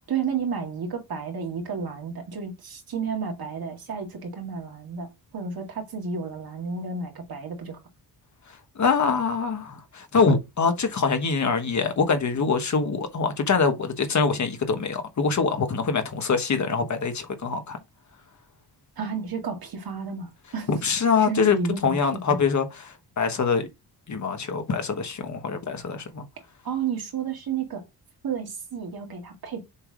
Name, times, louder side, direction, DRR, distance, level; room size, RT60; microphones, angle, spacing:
voice 1, 0.1-7.8 19.0-20.7 21.2-22.0 22.3-22.4 26.6-27.8 28.2-29.6, right 6 dB, 60° right, 2.3 m, -31 dB
voice 2, 8.5-17.8 20.7-21.6 21.8-23.7 24.1-26.2, left 5 dB, 45° left, 1.2 m, -24 dB
7.0 x 3.5 x 4.9 m
wide cardioid pair, 175°, 41 cm